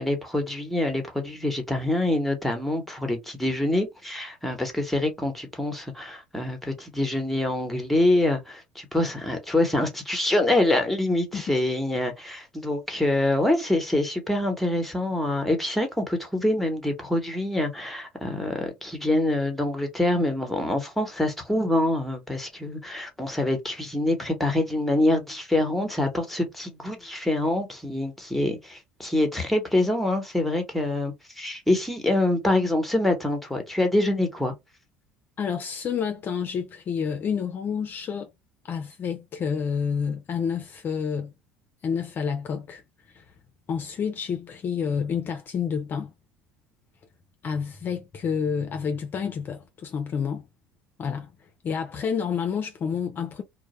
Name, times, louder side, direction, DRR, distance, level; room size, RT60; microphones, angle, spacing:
voice 1, 0.0-34.5, left 1 dB, ahead, 0.9 m, -25 dB
voice 2, 35.4-38.3 38.7-41.3 41.8-42.8 43.1-43.3 43.7-46.1 47.4-50.4 51.0-51.3 51.6-53.4, left 6 dB, 40° left, 0.4 m, -29 dB
2.1 x 2.0 x 2.9 m
hypercardioid pair, 65°, 5 cm